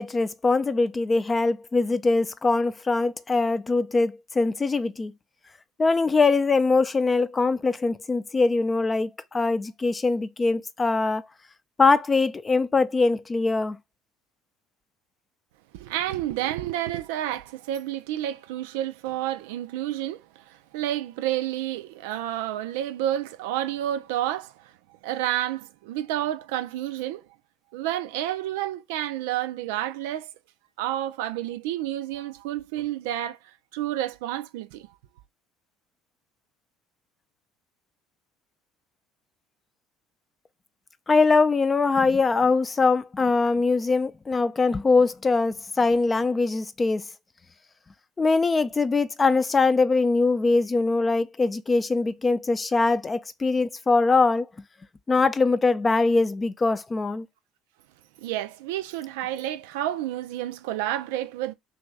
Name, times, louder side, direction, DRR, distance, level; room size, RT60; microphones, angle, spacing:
voice 1, 0.0-5.1 5.8-11.2 11.8-13.8 41.1-47.0 48.2-54.5 55.1-57.3, left 3 dB, 25° left, 0.5 m, -22 dB
voice 2, 15.7-24.7 25.0-27.2 27.7-30.3 30.8-33.4 33.7-34.9 58.2-61.5, right 13 dB, 75° right, 0.3 m, -30 dB
3.0 x 2.7 x 3.4 m
hypercardioid pair, 65°, 0 cm